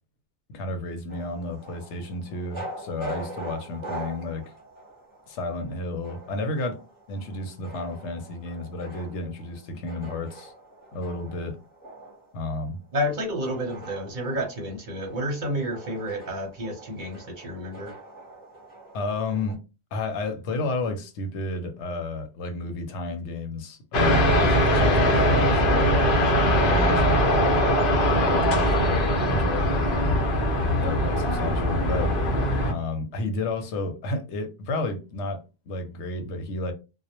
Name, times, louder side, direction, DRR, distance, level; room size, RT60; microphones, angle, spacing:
voice 1, 0.5-4.4 5.3-6.8 7.1-10.5 10.9-11.6 12.3-12.8 18.9-19.6 19.9-27.6 28.1-30.2 30.8-32.1 32.7-35.4 35.7-36.7, left 2 dB, 80° left, 0.9 m, -31 dB
sound 1, 1.1-19.5, right 2 dB, 10° left, 0.9 m, -43 dB
voice 2, 12.9-17.9 26.7-27.0, equal, 50° right, 0.8 m, -30 dB
sound 2, 23.9-32.7, equal, 55° left, 0.8 m, -21 dB
2.2 x 2.1 x 2.8 m
omnidirectional pair, 1.1 m